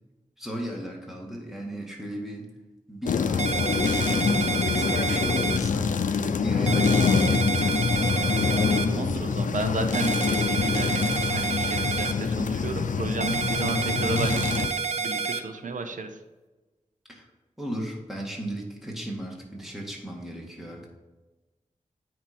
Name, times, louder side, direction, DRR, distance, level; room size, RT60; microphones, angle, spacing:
voice 1, 0.4-2.5 2.9-5.9 6.4-7.9 17.1-17.3 17.6-20.9, right 1 dB, 5° right, -1 dB, 2.0 m, -36 dB
sound 1, 3.1-14.7, left 5 dB, 80° left, 0.5 m, -25 dB
sound 2, 3.4-5.6 6.7-8.9 9.9-12.1 13.2-15.4, right 5 dB, 60° right, 0.6 m, -29 dB
voice 2, 8.9-16.2, right 3 dB, 80° right, 7 dB, 0.9 m, -33 dB
9.1 x 5.0 x 4.4 m, 1.1 s
wide cardioid pair, 95°, 13 cm